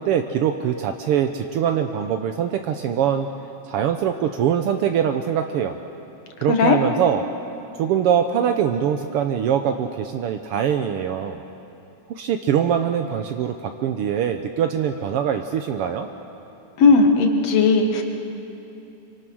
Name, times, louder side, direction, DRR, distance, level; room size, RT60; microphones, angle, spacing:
voice 1, 0.0-3.3 3.6-5.8 6.4-7.2 7.7-11.4 12.1-16.1, right 8 dB, 75° right, 6 dB, 1.3 m, -23 dB
voice 2, 16.8-18.0, left 4 dB, 60° left, 4 dB, 2.6 m, -16 dB
26.5 x 25.0 x 6.2 m, 2.8 s
omnidirectional pair, 3.5 m